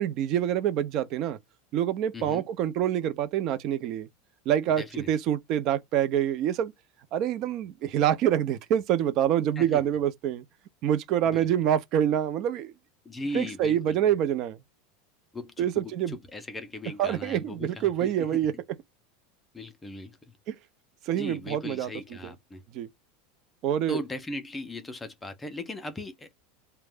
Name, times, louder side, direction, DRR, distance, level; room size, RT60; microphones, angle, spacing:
voice 1, 0.0-1.4 1.7-4.1 4.5-6.7 7.1-10.4 10.8-12.7 13.3-14.6 15.6-16.2 17.0-18.5 20.5-20.6 21.1-22.3 22.7-22.9 23.6-24.0, right 10 dB, 40° right, 0.5 m, -26 dB
voice 2, 2.1-2.5 4.8-5.1 9.6-9.8 11.3-11.5 13.0-14.0 15.3-18.4 19.5-20.2 21.1-22.6 23.9-26.4, left 2 dB, 10° left, 0.5 m, -38 dB
2.4 x 2.1 x 3.4 m
supercardioid pair, 155°, 0 cm